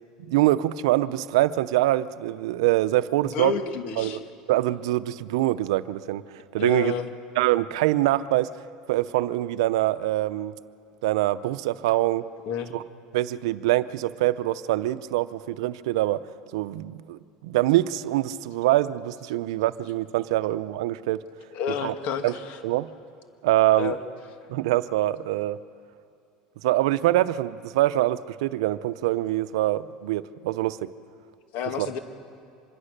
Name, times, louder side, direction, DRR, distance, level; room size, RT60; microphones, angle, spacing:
voice 1, 0.2-3.5 4.0-4.2 4.5-6.9 7.4-8.5 8.9-10.5 11.0-12.2 12.7-12.8 13.1-16.2 16.5-21.2 21.8-21.9 22.2-22.3 22.6-22.9 23.4-23.9 24.5-25.6 26.6-30.9 31.8-31.9, right 15 dB, 85° right, 14 dB, 0.6 m, -24 dB
voice 2, 3.2-4.2 6.6-7.1 12.5-12.7 21.5-22.6 23.8-24.0 31.5-32.0, left 7 dB, 60° left, 7 dB, 2.0 m, -30 dB
25.5 x 22.0 x 6.7 m, 2.4 s
supercardioid pair, 125°, 3 cm